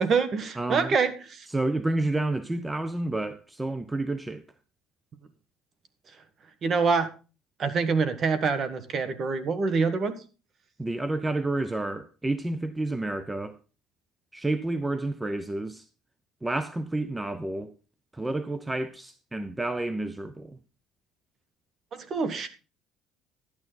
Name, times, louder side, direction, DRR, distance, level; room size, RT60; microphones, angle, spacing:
voice 1, 0.0-1.4 6.6-7.1 7.6-10.2 21.9-22.5, right 5 dB, 40° right, 1.4 m, -25 dB
voice 2, 0.6-1.0 1.5-4.4 10.8-13.6 14.3-15.8 16.4-17.7 18.1-20.6, right 2 dB, 10° right, 0.6 m, -30 dB
12.0 x 9.1 x 4.0 m
cardioid pair, 120°, 0 cm